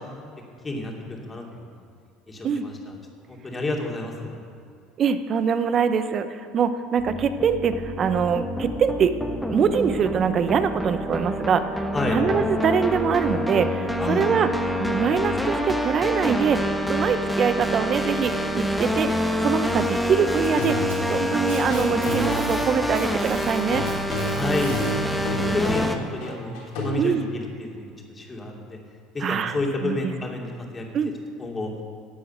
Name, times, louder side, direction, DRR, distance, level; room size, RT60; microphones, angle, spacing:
voice 1, 0.6-1.4 2.3-3.0 3.3-4.4 11.9-12.2 14.0-14.4 24.3-28.8 29.1-30.8 31.4-31.7, left 2 dB, 25° left, 0 dB, 2.7 m, -30 dB
voice 2, 5.0-9.1 9.5-11.8 12.1-14.5 14.8-16.6 16.9-19.1 19.4-23.8 27.0-27.3 29.2-29.6 29.8-30.1 30.9-31.1, right 7 dB, 45° right, 11 dB, 0.9 m, -23 dB
sound 1, 7.0-26.0, equal, ahead, 1.2 m, -26 dB
Packing tape duct tape, 20.2-22.7 22.9-24.9 26.0-26.1 26.7-26.8 27.6-27.7, right 3 dB, 90° right, 3.1 m, -41 dB
sound 2, 20.6-21.3 21.7-22.6 23.7-27.1, equal, 70° left, 3.7 m, -31 dB
11.5 x 7.8 x 7.9 m, 2.3 s
hypercardioid pair, 70°, 0 cm